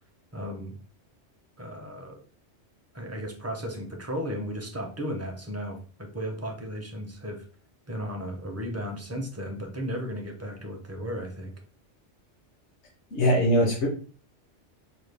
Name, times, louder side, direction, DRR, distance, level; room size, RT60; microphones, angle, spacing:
voice 1, 0.3-0.8 1.6-2.2 2.9-7.4 7.9-11.5, equal, 20° right, 2 dB, 0.4 m, -35 dB
voice 2, 13.1-13.9, equal, 70° left, -2 dB, 1.2 m, -21 dB
5.0 x 2.3 x 3.3 m, 0.40 s
omnidirectional pair, 1.2 m